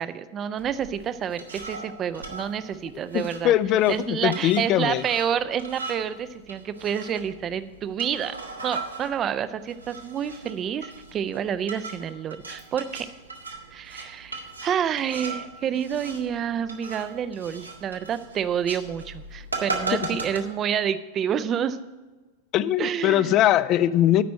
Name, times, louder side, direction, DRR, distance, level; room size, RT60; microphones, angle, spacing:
voice 1, 0.0-3.5 3.9-8.4 8.6-13.1 13.7-21.8 22.8-23.4, right 8 dB, 30° right, 13 dB, 0.4 m, -28 dB
sound 1, 0.6-20.4, right 3 dB, 80° right, 1.2 m, -39 dB
voice 2, 3.1-5.0 19.9-20.0 22.5-24.2, left 12 dB, 35° left, 16 dB, 0.3 m, -21 dB
8.8 x 5.1 x 7.7 m, 1.2 s
figure-of-eight pair, 90°, 0 cm